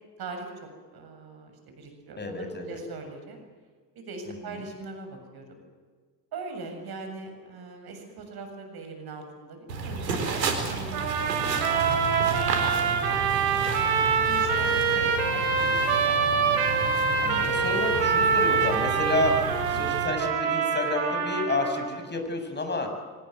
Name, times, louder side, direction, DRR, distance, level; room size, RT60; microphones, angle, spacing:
voice 1, 0.9-3.4 4.0-5.6 6.3-11.4 11.7-13.4 14.2-14.9 15.3-16.2 16.4-16.7 19.4-19.5, right 3 dB, 50° right, 5 dB, 7.5 m, -41 dB
voice 2, 2.2-2.8 4.4-4.6 14.9-15.1 17.2-22.9, left 2 dB, 20° left, 5 dB, 7.8 m, -30 dB
sound 1, 9.7-20.1, right 4 dB, 90° right, 4.4 m, -32 dB
sound 2, 10.9-21.9, right 5 dB, 65° right, 5.7 m, -25 dB
24.5 x 20.5 x 9.4 m, 1.5 s
hypercardioid pair, 70°, 49 cm